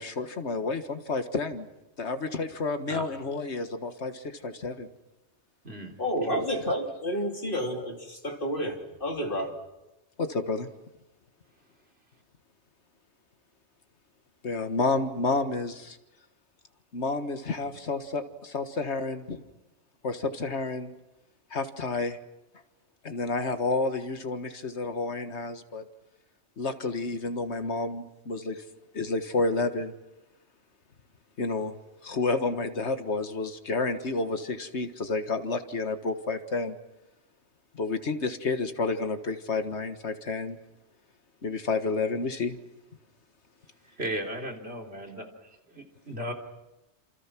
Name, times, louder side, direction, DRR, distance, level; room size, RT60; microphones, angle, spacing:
voice 1, 0.0-1.7 2.0-4.9 10.2-10.7 14.4-16.0 16.9-19.4 20.0-20.9 21.5-22.2 23.0-25.8 26.6-28.6 28.9-29.9 31.4-31.7 32.0-36.8 37.7-40.6 41.4-42.6, left 3 dB, 75° left, 8 dB, 1.9 m, -30 dB
voice 2, 6.0-9.5, equal, 50° left, 2 dB, 3.4 m, -30 dB
voice 3, 43.9-45.2 45.7-46.3, right 1 dB, 60° right, 2 dB, 3.6 m, -35 dB
29.0 x 27.0 x 6.1 m, 0.98 s
omnidirectional pair, 1.2 m